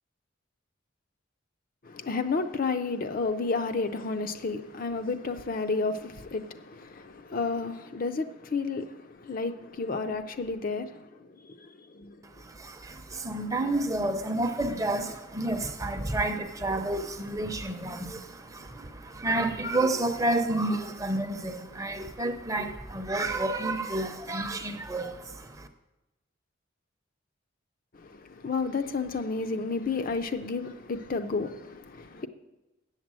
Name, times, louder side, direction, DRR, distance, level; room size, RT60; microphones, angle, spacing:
voice 1, 1.8-12.2 28.0-32.3, left 4 dB, 45° left, 0.5 m, -31 dB
voice 2, 12.2-25.7, right 2 dB, 15° right, 0.6 m, -30 dB
7.9 x 7.3 x 7.5 m
head